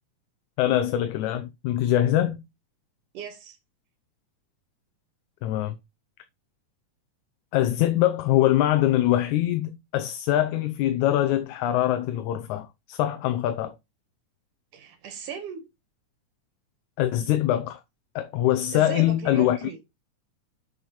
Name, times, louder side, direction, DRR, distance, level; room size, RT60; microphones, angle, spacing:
voice 1, 0.6-2.4 5.4-5.8 7.5-13.7 17.0-17.8 18.2-19.6, left 13 dB, 75° left, 2.0 m, -23 dB
voice 2, 3.1-3.6 14.7-15.6 18.7-19.8, right 7 dB, 85° right, 3.4 m, -37 dB
7.4 x 6.7 x 4.4 m
omnidirectional pair, 3.5 m